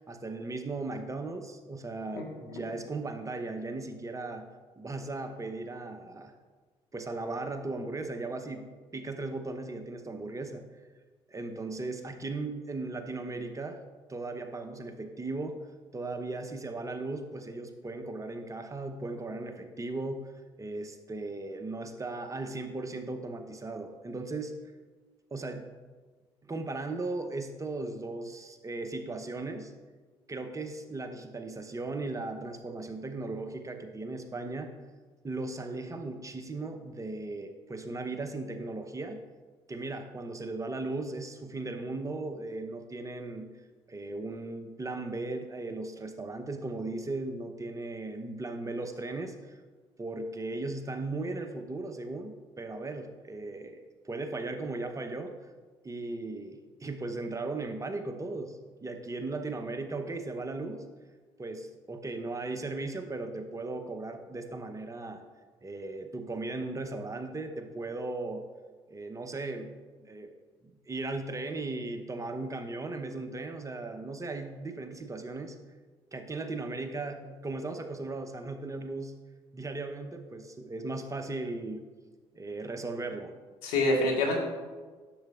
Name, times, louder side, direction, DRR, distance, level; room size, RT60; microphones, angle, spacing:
voice 1, 0.0-4.4 4.8-6.3 6.9-8.7 8.9-10.7 11.3-13.8 14.1-15.6 15.9-20.3 20.6-24.5 25.3-25.7 26.4-29.7 30.3-34.7 35.2-39.2 39.7-43.5 43.9-49.6 50.0-55.3 55.8-60.9 61.4-65.2 65.6-68.5 68.9-69.7 70.0-70.3 70.6-75.6 76.1-79.2 79.5-81.8 82.3-83.3, right 2 dB, 25° right, 7 dB, 0.9 m, -37 dB
voice 2, 2.1-2.6 83.6-84.4, left 2 dB, 80° left, 0 dB, 1.5 m, -27 dB
10.0 x 6.7 x 2.5 m, 1.4 s
hypercardioid pair, 55°, 13 cm